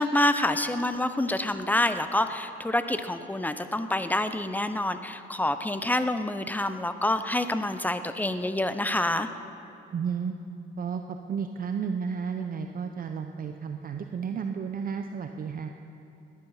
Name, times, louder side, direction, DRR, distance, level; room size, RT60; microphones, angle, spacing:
voice 1, 0.0-9.3, left 1 dB, 10° left, 10 dB, 0.8 m, -27 dB
voice 2, 9.9-10.3 10.8-15.7, right 6 dB, 45° right, 6 dB, 0.7 m, -32 dB
18.5 x 10.5 x 5.8 m, 2.8 s
cardioid pair, 90°, 20 cm